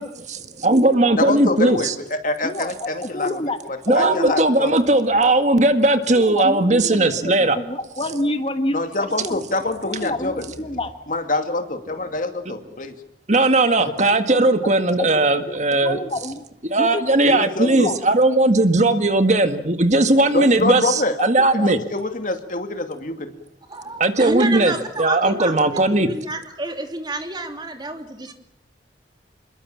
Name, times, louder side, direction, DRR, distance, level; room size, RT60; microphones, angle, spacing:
voice 1, 0.6-1.9 3.9-7.6 13.3-16.0 16.6-21.8 24.0-26.1, right 2 dB, 40° right, 8 dB, 1.8 m, -18 dB
voice 2, 1.2-3.4 3.7-4.7 8.7-10.4 11.1-13.0 17.2-17.9 20.3-21.1 21.6-23.3, left 2 dB, 50° left, 7 dB, 2.5 m, -25 dB
voice 3, 2.4-3.6 3.9-4.4 6.1-9.4 9.8-11.0 14.6-14.7 15.0-15.1 15.5-16.4 16.8-18.0 21.2-21.3 21.6-21.7, left 1 dB, 30° left, 8 dB, 1.3 m, -28 dB
voice 4, 23.7-28.3, right 2 dB, 25° right, 5 dB, 2.9 m, -29 dB
27.5 x 22.0 x 7.4 m, 0.74 s
head